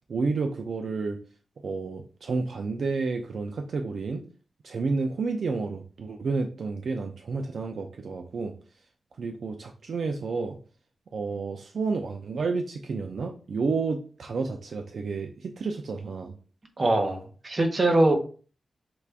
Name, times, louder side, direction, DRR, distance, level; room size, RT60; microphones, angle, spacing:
voice 1, 0.1-1.2 1.6-4.2 4.6-8.5 9.2-10.6 11.1-16.3, right 4 dB, 65° right, 4 dB, 0.5 m, -30 dB
voice 2, 16.8-18.2, right 2 dB, 35° right, 3 dB, 0.9 m, -22 dB
5.9 x 2.5 x 3.4 m, 0.39 s
wide cardioid pair, 160°, 0 cm